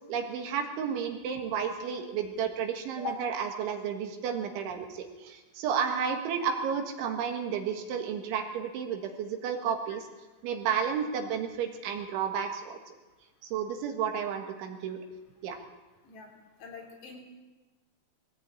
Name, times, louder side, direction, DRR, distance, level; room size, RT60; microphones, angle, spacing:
voice 1, 0.1-10.1 10.4-12.9 13.4-15.0 15.4-15.6, right 7 dB, 70° right, 5 dB, 3.9 m, -32 dB
voice 2, 16.6-17.2, left 6 dB, 55° left, 0 dB, 5.6 m, -40 dB
20.5 x 17.0 x 9.0 m, 1.2 s
omnidirectional pair, 5.9 m